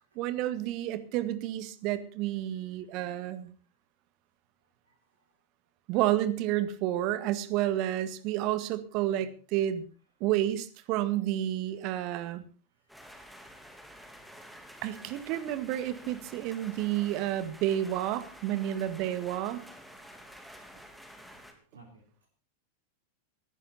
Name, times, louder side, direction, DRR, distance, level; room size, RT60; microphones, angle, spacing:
voice 1, 0.2-3.5 5.9-9.9 10.2-12.4 14.8-19.6, right 13 dB, 40° right, 14 dB, 1.8 m, -30 dB
sound 1, 12.9-21.5, equal, ahead, 3.2 m, -50 dB
voice 2, 21.4-22.3, right 3 dB, 75° right, 1 dB, 4.1 m, -59 dB
18.5 x 15.5 x 4.2 m, 0.37 s
figure-of-eight pair, 90°, 0 cm